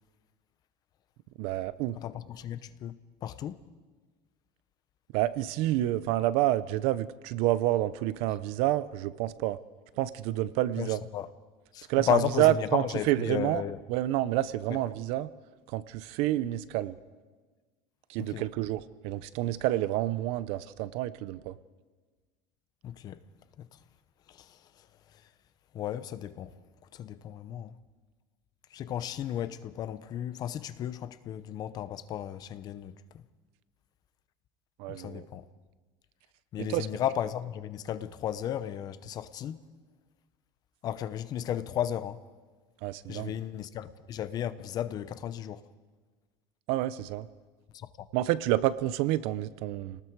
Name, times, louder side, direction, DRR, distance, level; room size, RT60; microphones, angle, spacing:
voice 1, 1.4-2.0 5.1-9.6 10.0-11.0 11.9-13.6 13.9-15.3 15.7-17.0 18.1-21.6 34.8-35.3 36.6-36.9 42.8-43.3 46.7-47.3 48.1-50.0, right 15 dB, 60° right, 0.7 m, -28 dB
voice 2, 2.0-3.6 10.8-10.9 11.1-11.3 11.7-13.8 18.3-18.4 22.8-23.2 23.6-23.7 24.4-24.5 25.7-26.5 26.9-27.7 28.7-32.9 34.9-35.5 36.5-39.6 40.8-42.2 43.1-45.6 47.7-48.1, left 10 dB, 35° left, 0.8 m, -34 dB
29.5 x 19.0 x 4.7 m
cardioid pair, 155°, 11 cm